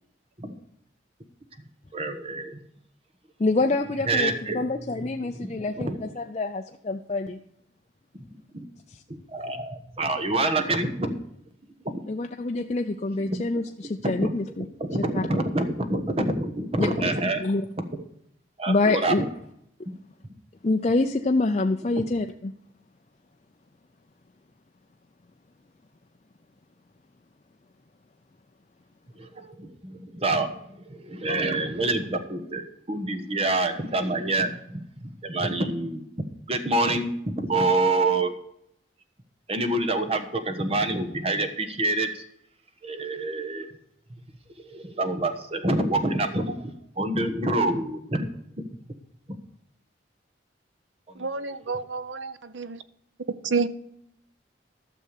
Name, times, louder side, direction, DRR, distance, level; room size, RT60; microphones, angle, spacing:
voice 1, 1.9-2.6 4.1-6.1 8.3-8.6 9.3-11.1 11.8-12.0 13.3-13.4 14.0-14.3 14.8-17.4 18.6-19.3 21.9-22.0 29.1-38.4 39.5-42.3 42.8-43.7 44.6-48.3 51.1-51.3, right 2 dB, 30° right, 7 dB, 1.2 m, -27 dB
voice 2, 3.4-5.9 6.2-7.4 12.1-14.6 15.1-15.2 16.8-16.9 17.4-17.6 18.7-19.2 20.6-22.5, left 2 dB, 35° left, 4 dB, 0.5 m, -26 dB
voice 3, 51.2-52.8 53.4-53.7, right 4 dB, 80° right, 14 dB, 0.7 m, -29 dB
13.0 x 6.7 x 6.7 m, 0.75 s
head